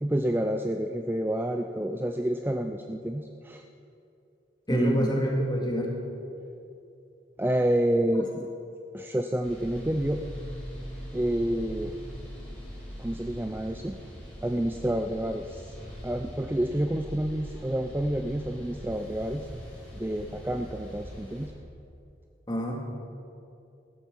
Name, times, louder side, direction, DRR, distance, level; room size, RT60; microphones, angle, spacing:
voice 1, 0.0-3.6 4.7-5.2 7.4-8.5 8.9-10.2 11.1-12.0 13.0-14.0 14.4-15.8 16.0-19.5 19.9-21.5, right 1 dB, 10° right, 5 dB, 0.4 m, -28 dB
voice 2, 4.7-5.9 22.5-22.8, equal, 25° left, -1 dB, 2.2 m, -27 dB
sound 1, 9.4-21.5, equal, 5° left, 4.3 m, -42 dB
15.0 x 13.0 x 5.4 m, 2.6 s
head